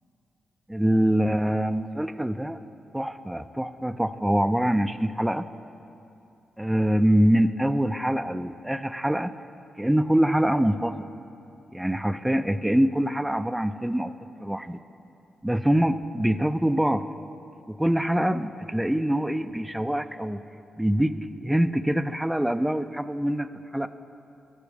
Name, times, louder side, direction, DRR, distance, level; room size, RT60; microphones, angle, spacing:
voice 1, 0.7-2.6 2.9-5.4 6.6-9.3 9.8-11.1 11.7-14.1 14.4-14.8 15.4-17.0 17.7-20.4 20.8-21.1 21.4-23.5 23.7-23.9, equal, 10° right, 12 dB, 0.3 m, -24 dB
13.5 x 6.1 x 3.5 m, 2.8 s
supercardioid pair, 55°, 0 cm